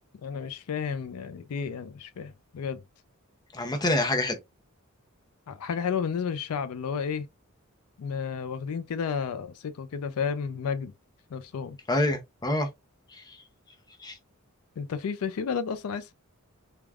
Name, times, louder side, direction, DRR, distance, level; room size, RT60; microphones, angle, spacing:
voice 1, 0.2-2.8 5.5-7.3 8.0-10.9 11.3-11.8 14.8-16.1, left 6 dB, 75° left, 0.4 m, -32 dB
voice 2, 3.5-4.4 11.9-12.7 13.1-13.4 14.0-14.2, left 1 dB, 20° left, 0.5 m, -27 dB
3.3 x 2.2 x 2.3 m
head